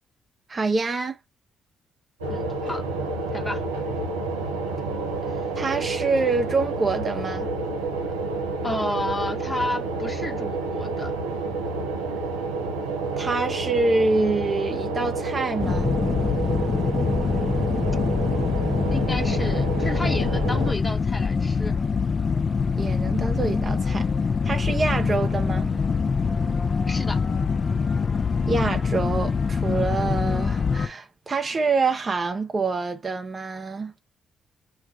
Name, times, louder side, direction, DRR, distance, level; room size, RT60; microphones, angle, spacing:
voice 1, 0.5-1.2 5.6-7.5 13.2-16.0 22.8-24.1 24.4-25.7 28.5-33.9, right 3 dB, 35° right, 0.5 m, -26 dB
sound 1, 2.2-20.7, right 3 dB, 85° right, 0.7 m, -29 dB
voice 2, 2.3-2.8 3.3-3.6 8.6-11.1 17.3-17.8 18.9-21.7 26.9-27.2, left 1 dB, 20° left, 0.9 m, -31 dB
sound 2, 15.6-30.9, left 5 dB, 45° left, 0.5 m, -24 dB
2.3 x 2.3 x 3.5 m
hypercardioid pair, 45°, 0 cm